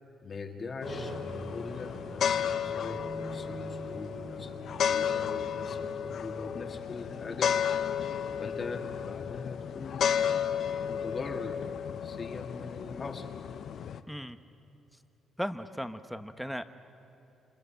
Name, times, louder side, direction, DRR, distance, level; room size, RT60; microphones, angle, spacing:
voice 1, 0.2-4.6 4.9-7.7 8.4-10.1 10.9-13.3, left 4 dB, 40° left, 4 dB, 2.1 m, -41 dB
sound 1, 0.8-14.0, left 8 dB, 65° left, 0.7 m, -33 dB
sound 2, 0.8-8.6, right 2 dB, 65° right, 4.3 m, -45 dB
voice 2, 14.1-14.4 15.4-16.6, equal, ahead, 10 dB, 1.0 m, -36 dB
28.0 x 26.0 x 5.8 m, 2.8 s
cardioid pair, 90°, 0 cm